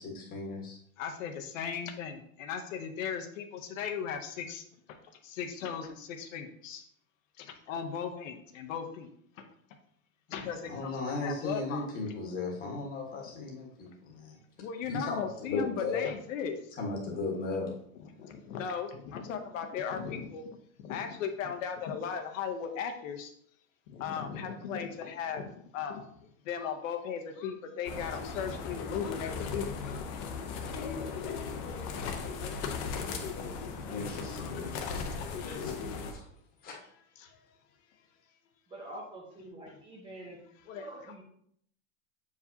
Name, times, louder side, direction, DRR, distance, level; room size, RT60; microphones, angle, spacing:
voice 1, 0.0-0.8 5.5-5.6 10.6-14.4 14.9-16.1 16.8-17.7 33.8-35.1 35.4-35.7 36.1-36.3 36.6-36.8, left 3 dB, 20° left, -1 dB, 1.4 m, -36 dB
voice 2, 1.0-4.6 4.9-5.0 5.2-6.8 7.4-9.1 9.4-9.5 10.3-11.9 14.6-16.6 18.2-20.5 20.8-23.3 23.9-26.1 26.4-30.0 30.7-31.1 34.3-34.5 37.2-37.4 40.7-40.9, left 7 dB, 70° left, 5 dB, 0.9 m, -37 dB
sound 1, 27.8-36.1, left 5 dB, 40° left, 0.8 m, -37 dB
voice 3, 38.7-40.5 40.7-41.2, right 1 dB, 10° right, -2 dB, 0.8 m, -46 dB
7.2 x 4.9 x 2.7 m, 0.67 s
supercardioid pair, 160°, 40 cm